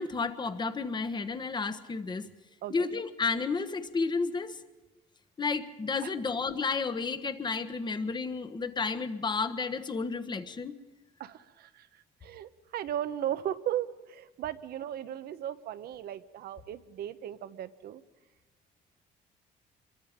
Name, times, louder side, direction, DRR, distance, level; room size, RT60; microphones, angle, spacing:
voice 1, 0.0-2.3 2.7-4.6 5.4-10.8, left 4 dB, 25° left, 11 dB, 1.3 m, -32 dB
voice 2, 11.2-18.0, right 11 dB, 65° right, 12 dB, 1.0 m, -36 dB
26.0 x 22.5 x 5.2 m, 1.1 s
cardioid pair, 110°, 17 cm